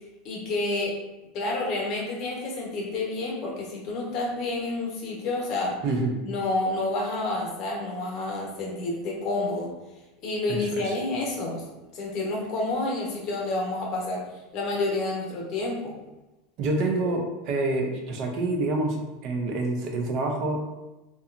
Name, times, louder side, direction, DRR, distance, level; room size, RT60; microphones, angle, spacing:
voice 1, 0.2-1.0 1.3-5.8 6.2-9.7 10.2-11.7 11.9-15.9, left 2 dB, 50° left, -2 dB, 0.8 m, -29 dB
voice 2, 5.8-6.2 10.5-10.9 16.6-20.6, right 2 dB, 50° right, 1 dB, 0.5 m, -27 dB
2.8 x 2.3 x 2.4 m, 1.0 s
supercardioid pair, 115°, 0 cm